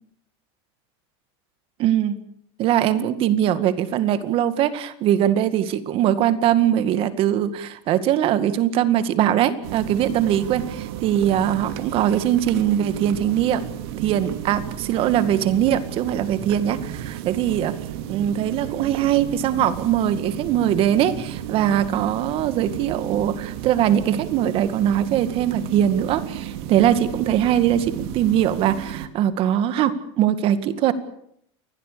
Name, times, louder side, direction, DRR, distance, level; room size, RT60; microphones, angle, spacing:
voice 1, 1.8-2.2 2.6-13.6 14.0-17.8 18.1-30.9, right 10 dB, 40° right, 13 dB, 2.1 m, -21 dB
sound 1, 9.6-29.1, right 11 dB, 65° right, 2.6 m, -33 dB
28.0 x 21.0 x 7.0 m, 0.70 s
supercardioid pair, 150°, 15 cm